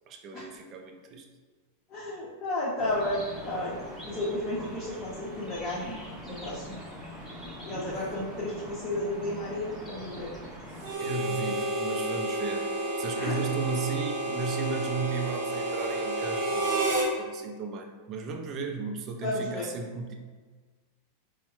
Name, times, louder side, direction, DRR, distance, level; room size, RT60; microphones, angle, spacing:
voice 1, 0.1-1.3 7.7-8.0 11.0-12.7 13.0-20.1, right 5 dB, 30° right, 4 dB, 0.4 m, -35 dB
voice 2, 1.9-3.8 4.0-6.0 6.2-6.7 7.7-10.3 13.2-13.4 19.2-19.7, left 1 dB, 25° left, -8 dB, 0.7 m, -32 dB
sound 1, 2.8-10.9, equal, 5° left, 0.9 m, -43 dB
Harmonica, 10.8-17.1, right 1 dB, 75° right, 0.9 m, -30 dB
4.6 x 2.1 x 3.0 m, 1.4 s
supercardioid pair, 150°, 0 cm